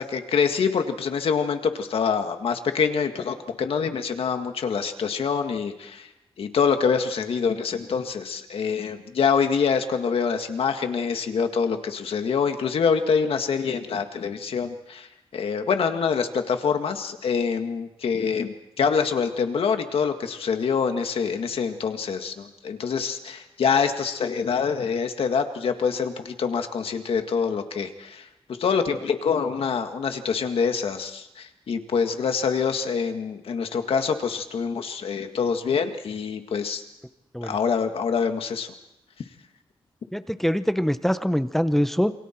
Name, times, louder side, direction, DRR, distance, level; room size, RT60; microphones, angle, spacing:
voice 1, 0.0-6.1 6.4-15.1 15.3-28.3 28.6-36.8 37.4-38.7, left 6 dB, 70° left, 6 dB, 1.9 m, -25 dB
voice 2, 40.1-42.1, equal, 5° left, 11 dB, 0.8 m, -23 dB
28.0 x 24.0 x 4.5 m, 0.88 s
wide cardioid pair, 150°, 10 cm